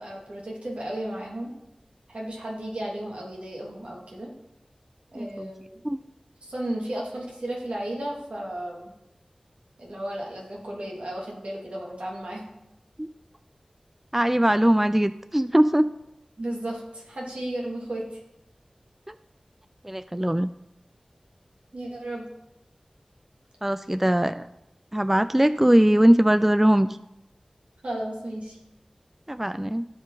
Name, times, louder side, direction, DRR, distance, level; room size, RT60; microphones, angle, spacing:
voice 1, 0.0-1.5 2.1-4.3 5.1-5.7 6.4-8.9 9.8-12.4 16.4-18.0 21.7-22.3 27.8-28.6, right 1 dB, 75° right, -3 dB, 2.6 m, -34 dB
voice 2, 5.1-5.5 5.8-6.0 13.0-13.1 14.1-15.9 19.1-19.2 19.8-20.5 23.6-24.5 24.9-26.9 29.3-29.9, right 1 dB, 10° right, 13 dB, 0.3 m, -21 dB
15.5 x 5.4 x 4.0 m, 0.91 s
wide cardioid pair, 45°, 2 cm